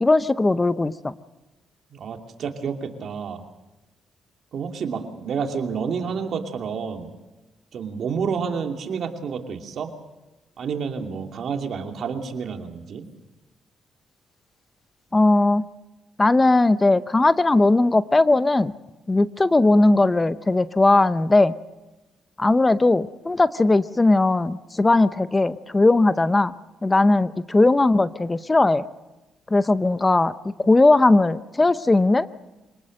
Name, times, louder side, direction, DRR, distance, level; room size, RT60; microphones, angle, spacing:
voice 1, 0.0-1.1 15.1-15.7 16.2-18.7 19.1-21.5 22.4-26.5 26.8-28.8 29.5-30.3 30.6-32.3, left 2 dB, 20° left, 14 dB, 0.6 m, -18 dB
voice 2, 1.9-3.4 4.5-7.1 7.7-9.9 10.6-13.0, right 6 dB, 60° right, 4 dB, 2.7 m, -29 dB
25.0 x 19.0 x 6.6 m, 1.1 s
cardioid pair, 90°, 0 cm